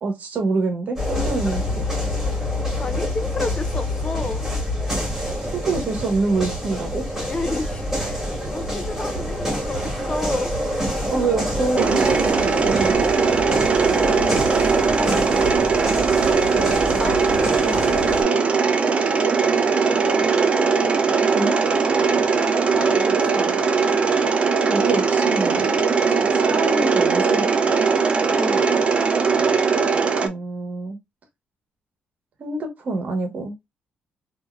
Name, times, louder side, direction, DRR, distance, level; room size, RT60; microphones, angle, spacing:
voice 1, 0.0-1.9 5.4-7.1 11.1-13.0 16.5-16.8 21.3-21.6 23.8-23.9 24.7-25.8 26.1-27.5 30.1-31.0 32.4-33.5, right 3 dB, 55° right, 1.0 m, -26 dB
sound 1, 1.0-18.2, equal, 5° right, 2.1 m, -26 dB
voice 2, 2.7-4.5 7.2-10.5 13.9-15.5 16.9-18.1 22.7-23.7 26.2-26.3 28.3-28.7, left 2 dB, 30° left, 0.4 m, -32 dB
Mechanisms, 11.8-30.3, right 5 dB, 35° right, 0.5 m, -20 dB
3.6 x 2.6 x 2.2 m
cardioid pair, 120°, 3 cm